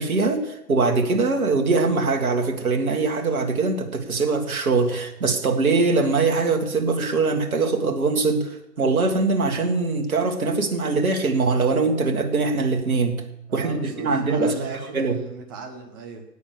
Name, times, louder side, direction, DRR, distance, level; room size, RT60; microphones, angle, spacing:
voice 1, 0.0-13.3 13.5-15.2, right 3 dB, 55° right, 3 dB, 2.1 m, -22 dB
voice 2, 13.5-16.2, right 4 dB, 15° right, 4 dB, 0.9 m, -37 dB
13.0 x 9.9 x 6.5 m, 0.86 s
figure-of-eight pair, 135°, 50 cm